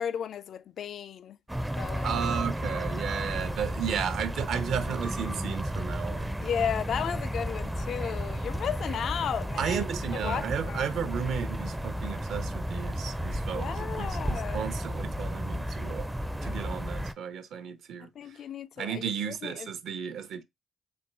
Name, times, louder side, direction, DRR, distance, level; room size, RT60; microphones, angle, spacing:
voice 1, 0.0-1.4 1.8-2.1 6.4-9.9 10.2-11.1 13.5-14.6 18.2-19.7, left 8 dB, 65° left, 0.3 m, -34 dB
sound 1, 1.5-17.1, equal, 5° right, 0.4 m, -33 dB
voice 2, 2.0-6.3 9.6-16.1 16.4-18.4 18.8-20.4, right 8 dB, 75° right, 0.7 m, -34 dB
4.3 x 2.3 x 4.5 m
cardioid pair, 90°, 0 cm